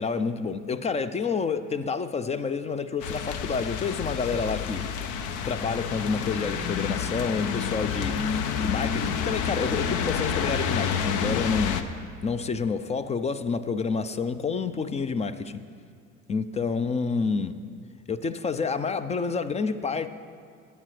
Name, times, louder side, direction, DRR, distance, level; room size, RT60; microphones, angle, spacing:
voice 1, 0.0-4.9 5.4-11.9 12.2-15.6 16.3-17.5 18.1-20.1, left 5 dB, 20° left, 13 dB, 0.5 m, -29 dB
sound 1, 3.0-11.8, left 7 dB, 55° left, 0.8 m, -29 dB
17.5 x 8.9 x 3.3 m, 2.2 s
hypercardioid pair, 70°, 37 cm